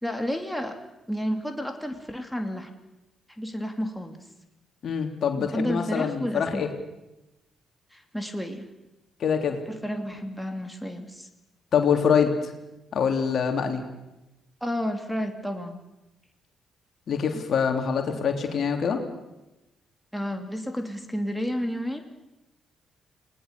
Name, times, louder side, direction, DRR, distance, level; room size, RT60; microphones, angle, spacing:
voice 1, 0.0-0.8 1.1-2.7 3.4-4.2 5.4-6.7 7.9-8.7 9.7-11.3 14.6-15.8 17.3-17.4 18.1-18.2 20.1-22.1, equal, 5° left, 4 dB, 2.9 m, -31 dB
voice 2, 4.8-6.7 9.2-9.6 11.7-12.5 12.9-13.8 17.1-19.0, left 6 dB, 55° left, 4 dB, 3.3 m, -24 dB
30.0 x 19.5 x 6.9 m, 0.97 s
hypercardioid pair, 45°, 0 cm